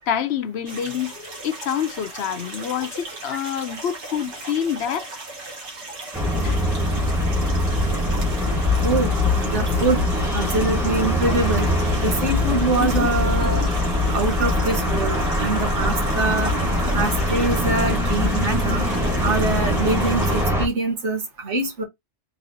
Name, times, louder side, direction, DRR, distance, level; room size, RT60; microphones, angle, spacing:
voice 1, 0.1-5.1 6.4-6.6 12.8-12.9, left 9 dB, 70° left, 0.9 m, -27 dB
sound 1, 0.7-20.5, right 2 dB, 75° right, 2.0 m, -37 dB
sound 2, 6.1-20.7, left 1 dB, ahead, 1.2 m, -22 dB
voice 2, 9.5-10.0 10.3-11.7 12.0-13.6 14.1-16.5 16.9-18.8 19.2-21.8, right 3 dB, 90° right, 1.6 m, -24 dB
4.0 x 3.4 x 2.6 m
omnidirectional pair, 1.2 m